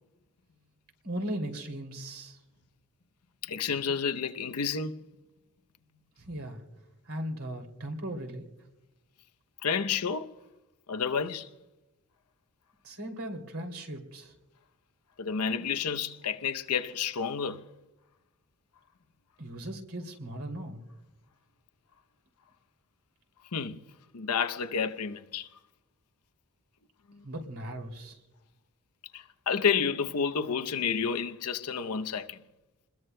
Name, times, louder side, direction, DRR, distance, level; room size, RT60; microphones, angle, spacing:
voice 1, 1.0-2.4 6.2-6.6 7.1-8.4 12.8-14.3 19.4-20.9 27.2-28.2, right 1 dB, 70° right, 2.8 m, -38 dB
voice 2, 3.4-4.9 9.6-10.3 10.9-11.5 15.2-17.6 23.5-23.8 24.1-25.5 27.1-27.2 29.1-32.4, left 6 dB, 90° left, 0.7 m, -30 dB
29.0 x 21.0 x 2.2 m
head